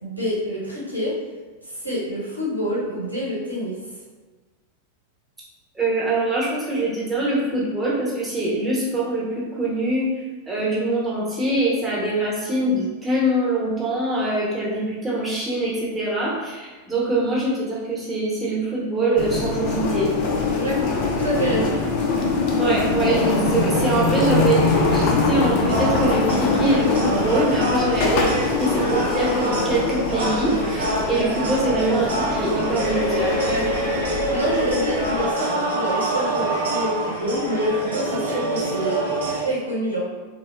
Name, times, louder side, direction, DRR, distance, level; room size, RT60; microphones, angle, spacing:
voice 1, 0.0-1.1 1.6-3.8 20.6-20.8 21.1-21.8 33.3-33.7 34.3-40.0, equal, 90° left, -7 dB, 0.8 m, -27 dB
voice 2, 5.7-10.1 10.5-20.1 22.6-33.4, right 2 dB, 10° right, -7 dB, 0.9 m, -24 dB
sound 1, 19.2-35.2, left 3 dB, 45° left, 0.4 m, -23 dB
sound 2, 25.7-39.4, right 1 dB, 70° right, 0.7 m, -26 dB
3.4 x 2.1 x 2.2 m, 1.3 s
figure-of-eight pair, 90°, 0 cm